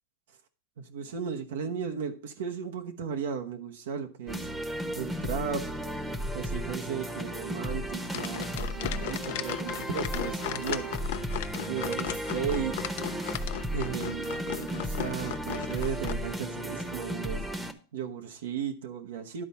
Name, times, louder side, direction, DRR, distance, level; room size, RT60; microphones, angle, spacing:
voice 1, 0.8-4.5 4.9-5.6 6.3-10.9 11.7-12.8 13.7-17.4 17.9-19.4, right 7 dB, 90° right, 4 dB, 1.0 m, -35 dB
sound 1, 4.3-17.7, equal, 10° right, 1.0 m, -34 dB
sound 2, 8.1-16.1, left 12 dB, 70° left, 0.6 m, -37 dB
11.0 x 4.1 x 5.6 m, 0.38 s
supercardioid pair, 130°, 0 cm